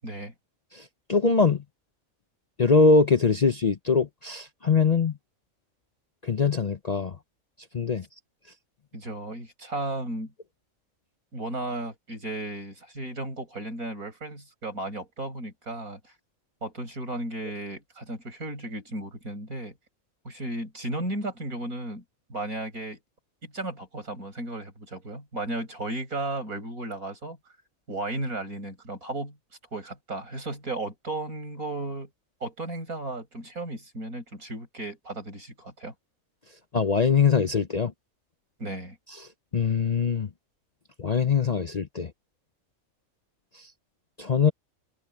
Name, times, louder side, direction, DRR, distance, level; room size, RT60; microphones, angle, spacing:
voice 1, 0.0-0.3 8.9-10.3 11.3-16.0 16.6-19.8 20.2-22.0 22.3-23.0 23.4-27.4 27.9-29.4 29.7-32.1 32.4-35.9 38.6-39.0, right 2 dB, 85° right, 8.2 m, -34 dB
voice 2, 1.1-1.6 2.6-5.1 6.2-7.2 7.7-8.0 36.7-37.9 39.5-40.3 41.0-42.1 44.2-44.5, left 5 dB, 40° left, 0.6 m, -22 dB
omnidirectional pair, 1.5 m